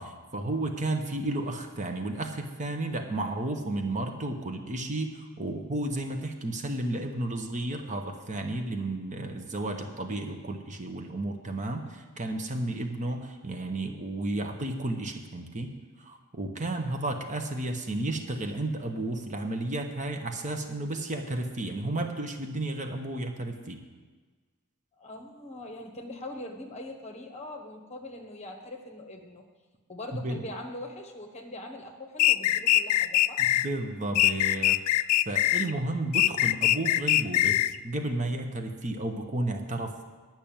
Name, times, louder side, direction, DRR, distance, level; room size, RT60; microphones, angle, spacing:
voice 1, 0.0-23.8 30.1-30.4 33.4-34.8 35.3-40.0, right 2 dB, 35° right, 4 dB, 0.9 m, -32 dB
voice 2, 25.0-29.4 29.9-33.4, left 1 dB, 30° left, 2 dB, 1.2 m, -42 dB
sound 1, 32.2-33.7 34.2-35.7 36.1-37.8, left 14 dB, 85° left, 0.3 m, -23 dB
10.5 x 5.9 x 8.8 m, 1.4 s
head